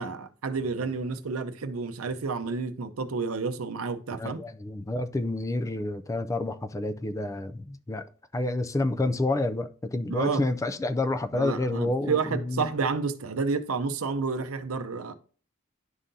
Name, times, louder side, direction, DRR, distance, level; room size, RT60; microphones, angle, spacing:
voice 1, 0.0-4.4 10.1-10.4 11.3-15.1, right 4 dB, 75° right, 0.6 m, -30 dB
voice 2, 4.1-8.1 8.3-12.7, left 2 dB, 15° left, 0.3 m, -29 dB
11.0 x 3.7 x 2.7 m
head